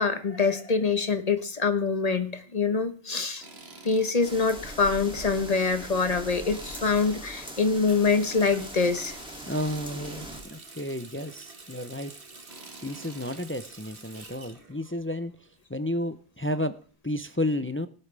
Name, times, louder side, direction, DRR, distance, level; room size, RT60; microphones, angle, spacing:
voice 1, 0.0-3.5 3.8-9.2, left 4 dB, 40° left, 10 dB, 1.2 m, -25 dB
Tools, 3.4-4.2 4.6-4.7 6.5-7.5 9.5-10.3 12.5-13.4, right 2 dB, 80° right, 2.2 m, -47 dB
sound 1, 4.2-10.4, equal, 5° right, 2.6 m, -41 dB
Water tap faucet, 7.8-15.5 15.8-16.9, right 3 dB, 60° right, 2.0 m, -48 dB
voice 2, 9.5-12.1 12.8-15.4 15.7-16.8 17.0-17.9, left 1 dB, 15° left, 12 dB, 0.5 m, -31 dB
19.0 x 8.5 x 3.4 m, 0.41 s
omnidirectional pair, 1.0 m